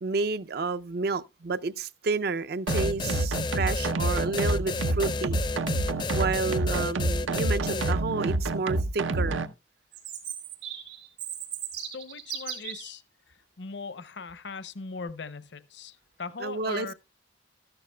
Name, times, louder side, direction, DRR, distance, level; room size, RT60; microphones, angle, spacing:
voice 1, 0.0-5.4 6.1-9.5 16.4-16.9, right 4 dB, 55° right, 0.4 m, -30 dB
sound 1, 2.7-7.9, left 3 dB, 25° left, 0.4 m, -31 dB
sound 2, 2.7-9.5, right 2 dB, 90° right, 0.7 m, -28 dB
Chirp tweet, 9.9-12.9, right 8 dB, 70° right, 4.0 m, -37 dB
voice 2, 11.8-13.0 13.3-16.9, left 4 dB, 65° left, 0.7 m, -40 dB
13.5 x 11.5 x 2.2 m
head